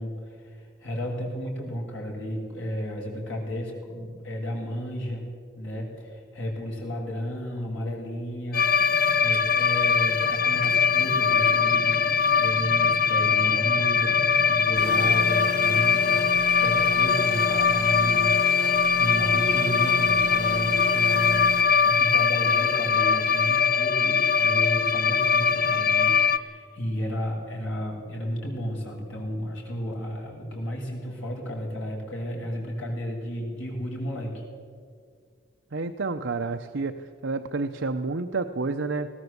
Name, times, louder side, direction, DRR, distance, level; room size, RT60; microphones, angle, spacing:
voice 1, 0.0-8.8 9.2-14.2 14.5-34.4, equal, 90° left, -1 dB, 7.1 m, -33 dB
sound 1, 8.5-26.4, left 6 dB, 50° left, 0.8 m, -22 dB
sound 2, 14.8-21.6, right 3 dB, 60° right, 1.3 m, -34 dB
voice 2, 35.7-39.1, right 3 dB, 75° right, 6 dB, 0.8 m, -29 dB
20.5 x 18.0 x 8.1 m, 2.1 s
head